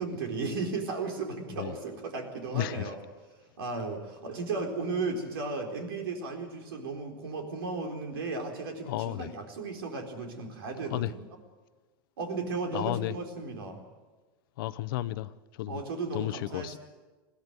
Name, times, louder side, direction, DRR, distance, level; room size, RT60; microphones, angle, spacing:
voice 1, 0.0-3.0 3.6-11.3 12.2-13.8 15.7-16.8, right 3 dB, 75° right, 4.2 m, -35 dB
voice 2, 2.5-2.9 8.8-9.3 10.9-11.1 12.7-13.1 14.6-15.8 16.1-16.8, left 15 dB, 65° left, 0.9 m, -33 dB
21.5 x 15.5 x 9.1 m
hypercardioid pair, 105°, 12 cm